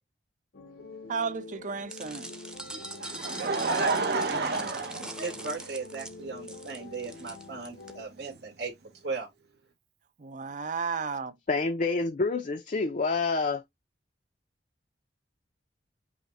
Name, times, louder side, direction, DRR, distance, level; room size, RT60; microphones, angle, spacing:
sound 1, 0.5-8.0, left 3 dB, 75° left, 0.9 m, -47 dB
voice 1, 1.1-2.3 10.2-11.3, right 5 dB, 45° right, 0.6 m, -33 dB
sound 2, 1.9-7.9, right 1 dB, 5° right, 0.7 m, -42 dB
Laughter, 2.7-5.9 6.8-6.9 8.3-8.4, right 3 dB, 65° right, 0.9 m, -30 dB
voice 2, 3.8-4.7 5.2-8.7 9.0-9.3, right 4 dB, 80° right, 1.8 m, -37 dB
voice 3, 11.5-13.6, left 3 dB, 45° left, 0.5 m, -27 dB
5.7 x 2.2 x 4.1 m
head